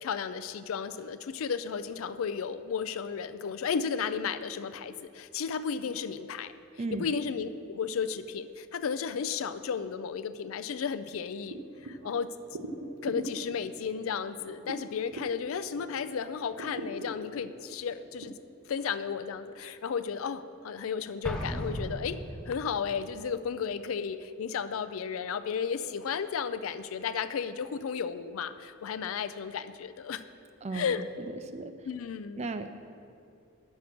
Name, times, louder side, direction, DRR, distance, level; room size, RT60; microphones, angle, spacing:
voice 1, 0.0-6.5 6.9-12.3 13.0-18.4 18.7-22.2 22.5-30.2 30.7-31.1 31.9-32.5, left 6 dB, 80° left, 11 dB, 0.4 m, -33 dB
sound 1, 11.5-16.1 16.5-18.3, right 1 dB, 75° right, 0.7 m, -42 dB
Explosion, 21.2-22.8, equal, 5° left, 0.8 m, -36 dB
voice 2, 30.6-31.7 32.4-32.7, right 3 dB, 35° right, 9 dB, 0.5 m, -36 dB
8.3 x 6.6 x 5.9 m, 2.5 s
head